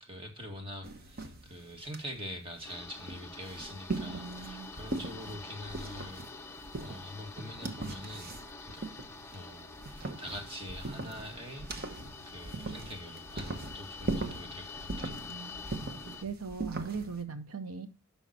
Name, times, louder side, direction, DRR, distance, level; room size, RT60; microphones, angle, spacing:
voice 1, 0.0-8.8 9.3-11.7 12.3-15.2, equal, 25° right, 1.8 m, -44 dB
sound 1, 0.8-17.2, right 2 dB, 45° right, 1.1 m, -41 dB
sound 2, 2.6-16.2, left 4 dB, 10° left, 0.7 m, -47 dB
voice 2, 3.9-4.7 15.3-15.6 16.2-17.9, right 5 dB, 75° right, 0.8 m, -40 dB
11.0 x 5.7 x 4.2 m
head